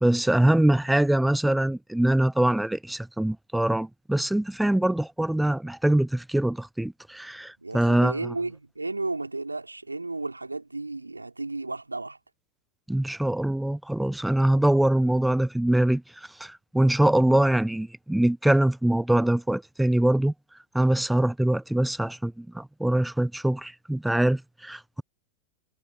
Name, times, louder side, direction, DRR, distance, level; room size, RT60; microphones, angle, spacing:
voice 1, 0.0-8.3 12.9-20.3 20.7-25.0, right 1 dB, 5° right, 0.5 m, -23 dB
voice 2, 7.6-12.2, right 2 dB, 80° right, 4.2 m, -33 dB
figure-of-eight pair, 90°, 0 cm